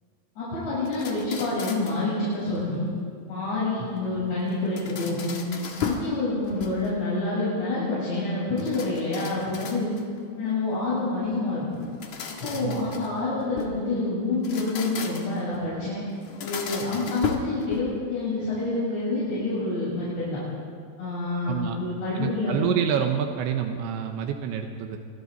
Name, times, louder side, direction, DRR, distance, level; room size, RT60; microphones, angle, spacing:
voice 1, 0.4-2.9 3.3-5.4 5.8-9.9 10.4-11.6 12.4-16.0 16.4-20.4 21.0-22.7, left 2 dB, 70° left, -11 dB, 10.0 m, -27 dB
sound 1, 0.9-2.1 4.5-6.1 6.5-7.1 8.6-10.2 11.8-13.8 14.3-15.5 16.2-18.1, left 6 dB, 55° left, 2.3 m, -35 dB
voice 2, 12.6-13.1 21.5-21.8 22.2-25.0, right 8 dB, 85° right, 5 dB, 3.4 m, -28 dB
26.5 x 24.0 x 4.2 m, 2.2 s
omnidirectional pair, 5.2 m